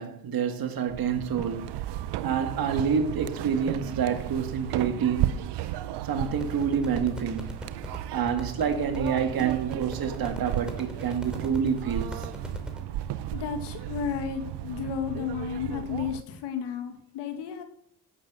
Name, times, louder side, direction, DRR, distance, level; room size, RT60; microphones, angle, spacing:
voice 1, 0.0-1.7 2.2-5.6 6.0-7.5 8.1-12.2, right 7 dB, 60° right, 2.1 m, -28 dB
sound 1, 0.9-16.2, right 13 dB, 85° right, 0.8 m, -34 dB
sound 2, 6.3-12.8, equal, ahead, 3.0 m, -40 dB
voice 2, 13.3-17.6, left 7 dB, 90° left, 2.2 m, -33 dB
16.0 x 7.0 x 6.3 m
cardioid pair, 90°, 40 cm